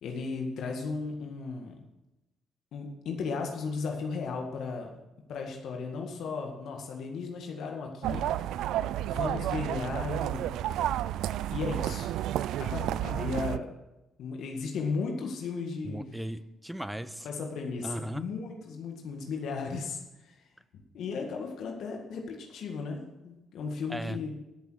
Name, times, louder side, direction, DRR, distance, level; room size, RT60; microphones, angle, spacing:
voice 1, 0.0-1.8 2.7-5.0 5.3-8.5 9.0-10.5 11.5-12.1 12.6-13.7 14.2-16.0 17.2-20.5 20.7-24.4, left 4 dB, 75° left, 2 dB, 1.8 m, -35 dB
sound 1, 8.0-13.6, right 12 dB, 85° right, 0.4 m, -31 dB
voice 2, 15.8-17.3 17.8-18.2 23.9-24.2, right 1 dB, 5° right, 14 dB, 0.7 m, -37 dB
13.5 x 7.2 x 6.3 m, 1.0 s
cardioid pair, 90°, 0 cm